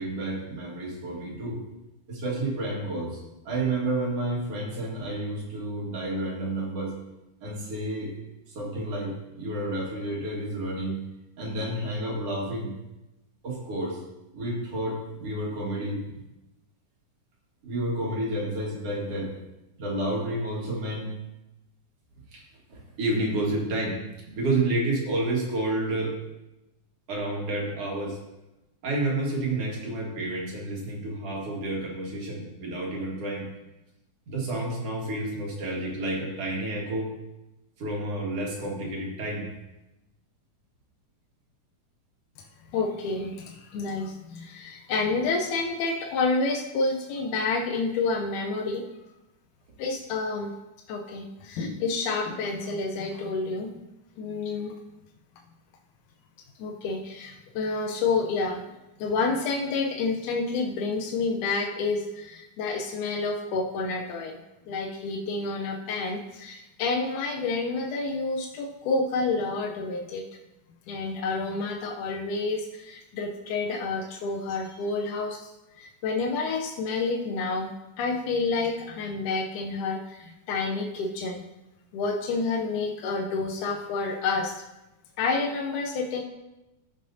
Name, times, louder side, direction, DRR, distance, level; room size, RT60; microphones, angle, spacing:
voice 1, 0.0-1.6 2.1-6.9 7.4-8.1 8.5-11.0 11.4-12.7 13.4-14.0 14.3-16.2 17.6-19.3 19.8-21.1 22.3-22.4 22.7-24.0 24.3-26.2 27.1-28.2 28.8-33.5 34.3-37.1 37.8-39.5, right 1 dB, 55° right, -3 dB, 2.6 m, -30 dB
voice 2, 42.7-48.8 49.8-50.5 50.9-53.8 54.2-54.8 56.6-58.6 59.0-64.4 64.7-70.2 70.9-75.5 75.8-77.7 78.0-81.4 81.9-84.6 85.2-86.2, left 3 dB, 85° left, 1 dB, 2.2 m, -29 dB
16.0 x 5.5 x 2.7 m, 0.99 s
omnidirectional pair, 3.5 m